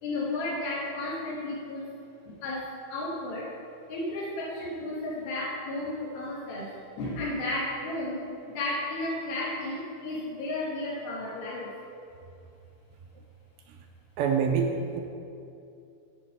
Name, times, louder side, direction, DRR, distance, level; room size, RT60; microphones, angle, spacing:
voice 1, 0.0-1.9 2.2-3.5 3.9-8.2 8.5-11.7, left 2 dB, 70° left, -5 dB, 2.5 m, -33 dB
voice 2, 14.2-15.0, right 6 dB, 85° right, 3 dB, 2.7 m, -26 dB
10.0 x 4.9 x 5.3 m, 2.6 s
omnidirectional pair, 5.3 m